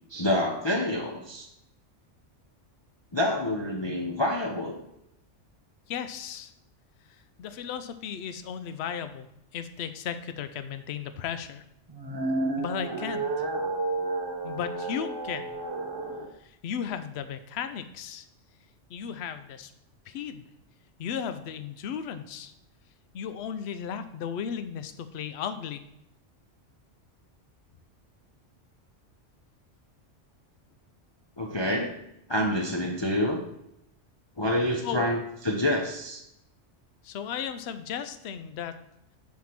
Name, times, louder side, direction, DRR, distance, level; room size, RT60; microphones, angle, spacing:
voice 1, 0.1-1.5 3.1-4.8 31.4-31.9 32.3-33.4 34.4-36.2, left 1 dB, 30° left, 0 dB, 0.6 m, -27 dB
voice 2, 5.9-6.5 7.4-9.3 9.5-11.6 12.6-13.5 14.4-15.6 16.4-18.3 18.9-19.7 20.1-20.5 21.0-22.5 23.1-25.8 34.8-35.1 37.0-38.8, left 8 dB, 65° left, 10 dB, 0.8 m, -35 dB
sound 1, 11.9-16.3, right 2 dB, 25° right, 0.6 m, -31 dB
5.4 x 4.8 x 5.8 m, 0.81 s
omnidirectional pair, 1.3 m